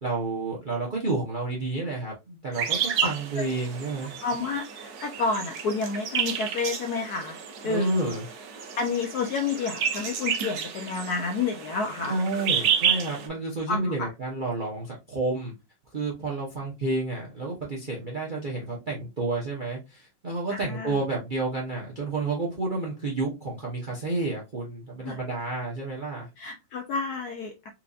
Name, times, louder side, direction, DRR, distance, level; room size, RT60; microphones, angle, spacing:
voice 1, 0.0-4.1 7.6-8.3 12.1-15.5 15.9-26.3, right 2 dB, 45° right, 0.6 m, -30 dB
sound 1, 2.5-13.3, right 8 dB, 65° right, 1.1 m, -31 dB
voice 2, 4.2-7.4 7.6-8.1 8.8-12.2 13.7-14.1 20.5-20.9 25.0-25.2 26.4-27.7, left 4 dB, 75° left, 0.9 m, -30 dB
4.4 x 2.6 x 2.4 m
omnidirectional pair, 2.2 m